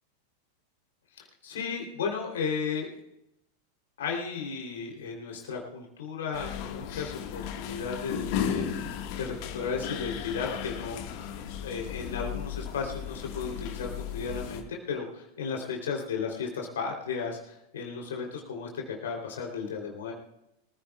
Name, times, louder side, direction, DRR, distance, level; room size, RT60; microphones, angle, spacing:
voice 1, 1.2-3.0 4.0-8.7 9.2-11.0 11.6-20.1, left 5 dB, 60° left, 0 dB, 3.2 m, -34 dB
sound 1, 6.3-14.6, left 8 dB, 45° left, 1.6 m, -35 dB
24.5 x 15.5 x 2.3 m, 0.85 s
figure-of-eight pair, 90°, 0 cm